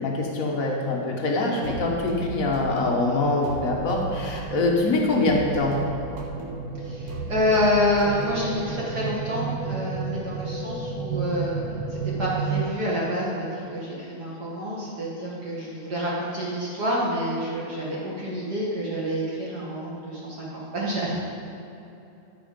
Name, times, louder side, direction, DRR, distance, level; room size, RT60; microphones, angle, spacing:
voice 1, 0.0-5.8, left 2 dB, 60° left, -1 dB, 0.9 m, -24 dB
sound 1, 1.3-12.7, right 5 dB, 80° right, 2.2 m, -33 dB
sound 2, 1.6-8.8, right 2 dB, 55° right, 2.2 m, -36 dB
voice 2, 6.8-11.6 11.9-21.1, equal, 40° right, -6 dB, 2.2 m, -28 dB
13.0 x 6.4 x 5.3 m, 2.9 s
omnidirectional pair, 3.3 m